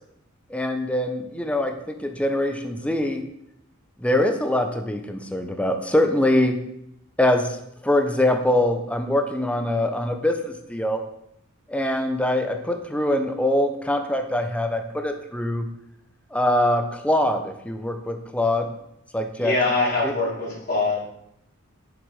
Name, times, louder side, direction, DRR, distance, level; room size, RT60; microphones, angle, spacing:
voice 1, 0.5-3.2 4.0-6.6 7.2-7.6 7.8-11.0 11.7-15.7 16.3-18.7 19.1-19.5 20.0-20.1, left 1 dB, 5° left, 5 dB, 0.8 m, -23 dB
voice 2, 19.4-21.0, left 3 dB, 45° left, -7 dB, 3.7 m, -23 dB
7.6 x 6.6 x 4.8 m, 0.79 s
head